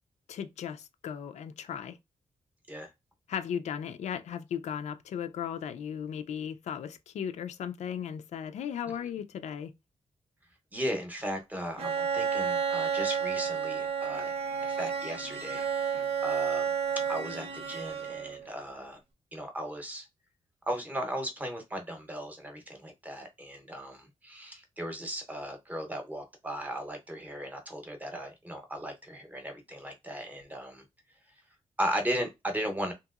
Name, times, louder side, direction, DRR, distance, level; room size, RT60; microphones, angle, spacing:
voice 1, 0.3-2.0 3.3-9.7, left 8 dB, 80° left, 0.4 m, -36 dB
voice 2, 10.7-14.4 14.6-16.7 17.1-19.0 19.3-20.1 20.7-30.8 31.8-32.9, equal, 15° right, 0.7 m, -36 dB
Bowed string instrument, 11.8-18.5, right 7 dB, 60° right, 0.7 m, -31 dB
2.9 x 2.8 x 2.3 m
wide cardioid pair, 155°, 12 cm